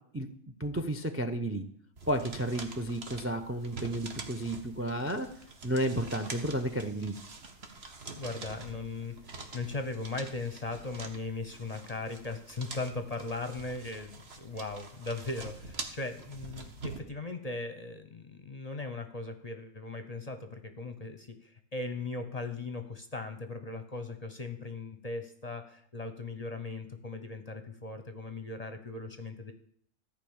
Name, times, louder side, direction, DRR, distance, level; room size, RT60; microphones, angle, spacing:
voice 1, 0.6-1.6 2.1-5.3 5.6-7.2, right 1 dB, 15° right, 9 dB, 0.5 m, -32 dB
sound 1, 2.0-17.0, right 3 dB, 50° right, 1.5 m, -46 dB
voice 2, 8.1-9.1 9.5-29.5, left 3 dB, 35° left, 8 dB, 0.8 m, -38 dB
14.5 x 5.1 x 8.7 m, 0.65 s
omnidirectional pair, 1.5 m